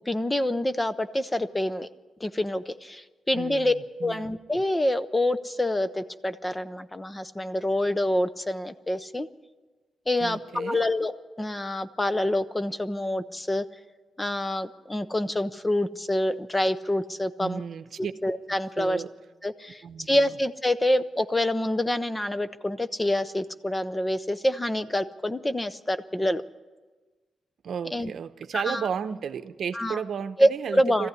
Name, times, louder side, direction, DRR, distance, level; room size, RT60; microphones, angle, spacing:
voice 1, 0.1-1.9 2.2-3.7 4.0-9.3 10.1-11.1 11.4-13.6 14.2-17.6 18.2-19.0 19.4-26.4 27.9-28.1 28.5-28.9 29.7-30.0 30.4-31.1, left 1 dB, 10° left, 12 dB, 0.5 m, -26 dB
voice 2, 3.3-3.7 4.0-4.3 10.2-10.8 17.4-18.1 18.8-19.1 19.8-20.3 27.6-31.1, right 7 dB, 60° right, 10 dB, 0.8 m, -33 dB
21.0 x 15.0 x 9.7 m, 1.3 s
wide cardioid pair, 165°, 0 cm